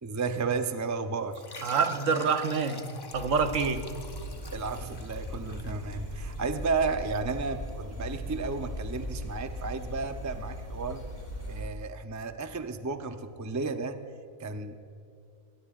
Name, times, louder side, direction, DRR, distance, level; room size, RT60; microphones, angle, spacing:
voice 1, 0.0-1.5 4.5-11.0 11.4-14.1 14.4-14.7, right 4 dB, 25° right, 7 dB, 0.4 m, -33 dB
sound 1, 1.3-6.5, left 3 dB, 25° left, 0.6 m, -46 dB
voice 2, 1.6-3.9, right 5 dB, 70° right, 7 dB, 1.4 m, -27 dB
sound 2, 3.1-11.6, equal, 40° right, 4.6 m, -39 dB
sound 3, 5.3-11.3, left 2 dB, 75° left, 2.7 m, -48 dB
21.5 x 20.5 x 2.5 m, 2.5 s
omnidirectional pair, 1.4 m